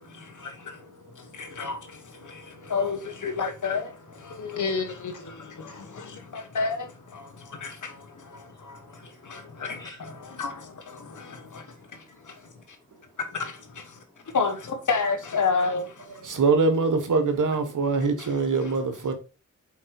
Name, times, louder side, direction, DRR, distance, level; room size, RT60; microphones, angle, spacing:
voice 1, 0.0-1.7 2.2-2.7 5.4-6.6 7.2-10.4 10.9-13.2 14.0-14.4 16.2-16.4 16.7-16.8, left 1 dB, 15° left, 3.2 m, -57 dB
voice 2, 2.7-3.8 4.6-4.9 6.5-6.8 9.6-9.8 10.4-10.5 14.3-15.8, left 4 dB, 80° left, 1.4 m, -26 dB
voice 3, 16.2-19.1, right 4 dB, 85° right, 1.4 m, -23 dB
5.5 x 4.4 x 4.8 m
cardioid pair, 55°, 30 cm